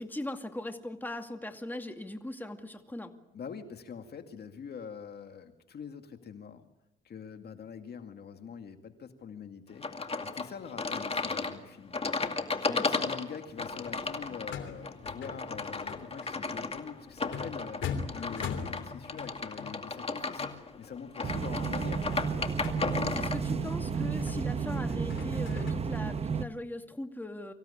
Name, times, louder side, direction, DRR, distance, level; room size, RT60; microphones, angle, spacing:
voice 1, 0.0-3.1 12.6-12.9 22.9-27.5, left 1 dB, 10° left, 6 dB, 2.3 m, -39 dB
voice 2, 3.3-6.7 7.0-9.9 10.2-12.1 12.6-22.1, left 6 dB, 55° left, 6 dB, 2.2 m, -44 dB
sound 1, 9.8-23.4, left 3 dB, 30° left, 2.3 m, -35 dB
sound 2, 13.5-25.7, left 6 dB, 70° left, 3.2 m, -43 dB
sound 3, 21.2-26.4, right 6 dB, 30° right, 1.0 m, -32 dB
25.0 x 16.5 x 10.0 m, 0.92 s
cardioid pair, 90°, 20 cm